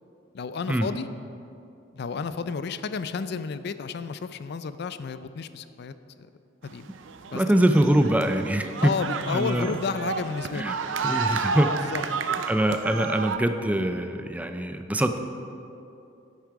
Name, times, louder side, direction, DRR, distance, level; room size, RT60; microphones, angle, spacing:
voice 1, 0.3-1.1 1.9-5.9 6.6-6.9 7.3-7.4 8.8-10.8 11.7-12.0 12.3-12.4, left 5 dB, 60° left, 13 dB, 0.4 m, -31 dB
sound 1, 6.7-13.4, right 5 dB, 80° right, 0.5 m, -31 dB
voice 2, 7.3-8.9 9.3-9.8 10.5-10.8 11.0-11.7 12.5-15.2, right 1 dB, 10° right, 7 dB, 0.5 m, -23 dB
10.0 x 8.3 x 4.7 m, 2.7 s
head